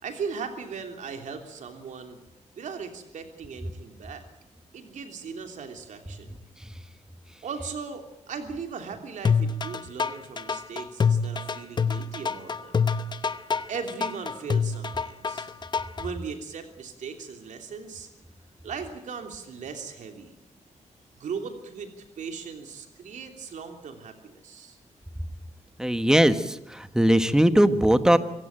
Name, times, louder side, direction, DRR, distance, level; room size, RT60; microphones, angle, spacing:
voice 1, 0.0-2.2 2.5-4.2 4.7-6.3 7.4-12.7 13.7-15.5 16.0-18.1 18.6-20.3 21.2-21.9 22.2-24.8, right 5 dB, 80° right, 6 dB, 3.1 m, -38 dB
sound 1, 9.2-16.1, left 5 dB, 35° left, 0.9 m, -26 dB
voice 2, 25.8-28.2, right 1 dB, 5° right, 11 dB, 1.3 m, -20 dB
25.0 x 16.0 x 8.9 m, 0.87 s
wide cardioid pair, 115°, 12 cm